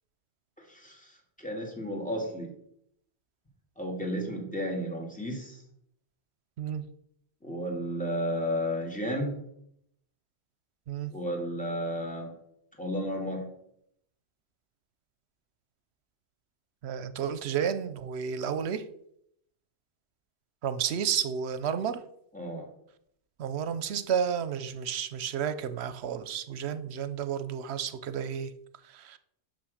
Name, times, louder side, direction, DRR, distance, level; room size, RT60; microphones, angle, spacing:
voice 1, 0.7-2.5 3.8-5.6 7.4-9.3 11.1-12.3 12.8-13.4 22.3-22.7, equal, 5° left, 0 dB, 2.0 m, -33 dB
voice 2, 16.8-18.8 20.6-22.0 23.4-28.5 28.9-29.2, right 8 dB, 75° right, 12 dB, 0.9 m, -31 dB
6.1 x 5.7 x 6.4 m, 0.74 s
omnidirectional pair, 1.1 m